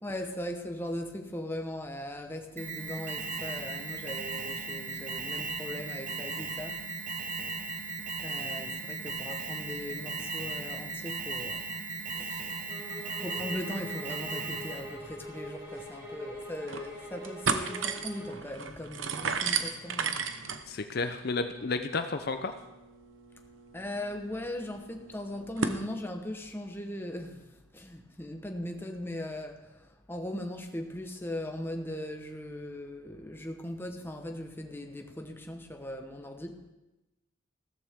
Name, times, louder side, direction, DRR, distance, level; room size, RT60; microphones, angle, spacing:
voice 1, 0.0-6.9 7.4-7.5 8.2-11.7 12.1-12.7 13.1-20.2 23.7-36.6, left 1 dB, 10° left, 4 dB, 1.1 m, -39 dB
Alarm, 2.6-15.0, right 4 dB, 40° right, 1.2 m, -37 dB
sound 1, 12.7-18.4, equal, 20° right, 4.5 m, -44 dB
sound 2, 15.4-15.5 15.8-15.9 16.4-16.9 17.2-25.8, right 5 dB, 80° right, 0.9 m, -35 dB
voice 2, 20.7-22.5, left 3 dB, 55° left, 8 dB, 0.6 m, -32 dB
15.0 x 13.5 x 3.6 m, 1.0 s
head